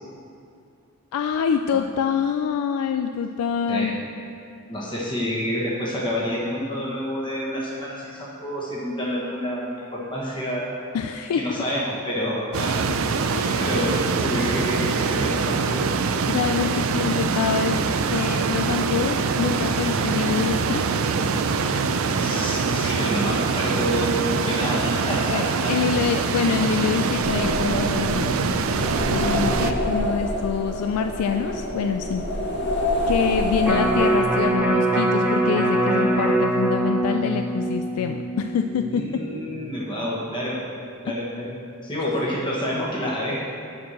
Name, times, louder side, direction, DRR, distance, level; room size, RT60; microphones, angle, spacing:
voice 1, 1.1-3.9 10.9-11.4 13.3-13.6 16.3-17.8 18.1-21.0 25.3-28.7 29.1-32.2 33.1-39.0, left 7 dB, 85° left, 7 dB, 0.3 m, -26 dB
voice 2, 4.7-10.9 11.3-12.8 13.1-13.3 13.6-15.9 22.1-25.7 32.5-32.6 38.9-40.6 41.0-41.5 41.8-43.4, equal, 20° left, -5 dB, 1.3 m, -28 dB
sound 1, 12.5-29.7, right 5 dB, 70° right, 0.4 m, -24 dB
sound 2, 26.9-34.4, left 1 dB, 55° left, 1.0 m, -27 dB
Electric guitar, 33.6-39.9 40.3-40.4, right 1 dB, 5° right, 0.9 m, -23 dB
9.4 x 4.5 x 6.3 m, 2.4 s
head